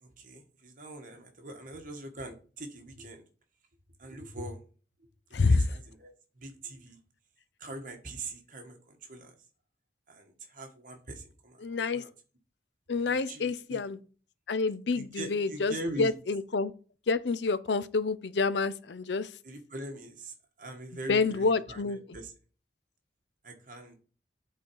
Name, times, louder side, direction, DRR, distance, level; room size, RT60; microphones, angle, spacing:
voice 1, 0.0-3.2 4.0-4.6 5.5-7.0 7.6-9.3 10.1-11.6 11.9-12.1 13.0-13.8 14.9-16.1 19.4-22.3 23.4-24.0, right 1 dB, 50° right, 1.6 m, -42 dB
voice 2, 11.6-12.0 12.9-14.0 14.5-16.7 17.1-19.3 21.1-22.0, left 4 dB, 80° left, 0.6 m, -28 dB
11.5 x 4.0 x 4.7 m
head